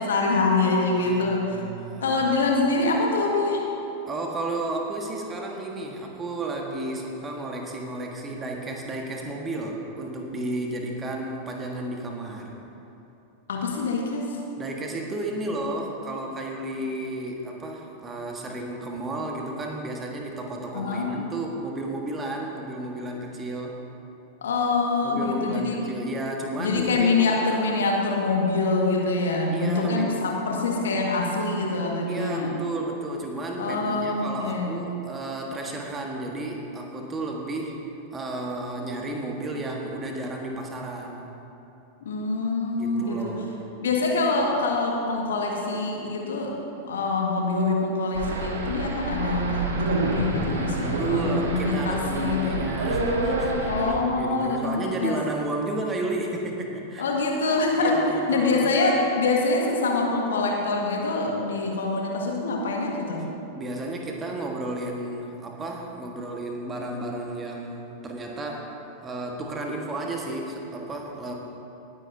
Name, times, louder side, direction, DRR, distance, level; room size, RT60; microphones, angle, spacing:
voice 1, 0.0-1.6 2.0-3.6 13.5-14.4 20.7-21.1 24.4-25.8 26.6-32.5 33.6-34.8 42.0-43.3 43.8-46.6 46.8-52.6 53.7-55.2 57.0-58.0 58.3-63.2, left 3 dB, 65° left, -1 dB, 1.7 m, -25 dB
voice 2, 0.9-2.3 4.0-12.6 14.6-23.8 25.0-27.2 29.5-30.3 32.1-37.8 38.1-41.3 42.7-43.7 50.8-57.0 57.8-58.7 63.5-71.3, right 2 dB, 20° right, 0 dB, 1.5 m, -32 dB
sound 1, 48.1-53.9, right 2 dB, 65° right, 1.4 m, -28 dB
19.5 x 9.7 x 2.8 m, 2.9 s
figure-of-eight pair, 90°, 0 cm